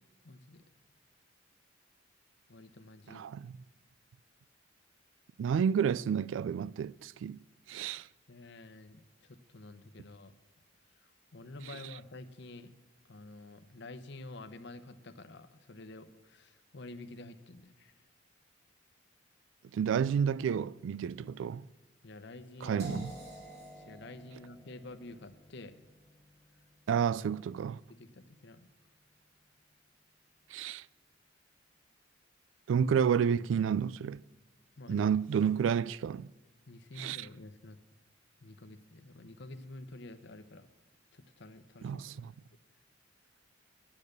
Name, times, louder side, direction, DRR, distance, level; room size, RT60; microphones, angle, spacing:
voice 1, 0.2-0.6 2.5-3.3 8.3-10.3 11.3-12.7 13.1-17.9 22.0-22.8 23.8-25.8 27.0-27.1 27.9-28.7 34.8-35.1 36.7-37.8 38.4-40.7 41.1-42.0, left 2 dB, 65° left, 0.8 m, -49 dB
voice 2, 3.1-3.5 5.4-7.4 7.7-8.1 19.7-21.7 22.6-23.1 26.9-27.8 30.5-30.8 32.7-34.2 34.9-36.3 37.0-37.3 41.8-42.3, right 7 dB, 80° right, 0.3 m, -30 dB
sound 1, 22.8-28.7, equal, 60° right, 3.6 m, -49 dB
10.0 x 8.8 x 6.6 m
head